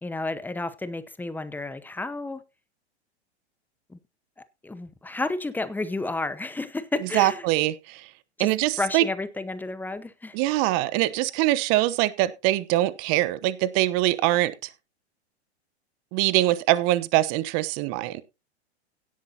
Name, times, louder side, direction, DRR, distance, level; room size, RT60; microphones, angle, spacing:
voice 1, 0.0-2.4 3.9-4.0 4.6-7.5 8.4-8.5 8.8-10.4, left 2 dB, 5° left, 0.8 m, -31 dB
voice 2, 7.1-8.0 8.4-9.0 10.3-14.5 16.1-18.2, right 16 dB, 40° right, 1.0 m, -23 dB
17.0 x 8.1 x 2.8 m
hypercardioid pair, 100°, 33 cm